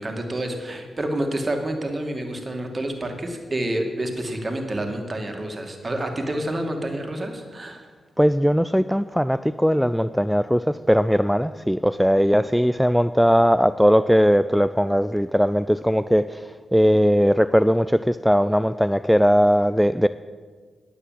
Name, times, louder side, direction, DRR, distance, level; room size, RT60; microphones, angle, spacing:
voice 1, 0.0-7.9, right 1 dB, 35° right, 4 dB, 2.3 m, -28 dB
voice 2, 8.2-20.1, equal, ahead, 13 dB, 0.4 m, -19 dB
10.0 x 8.5 x 7.6 m, 1.5 s
supercardioid pair, 40°, 0 cm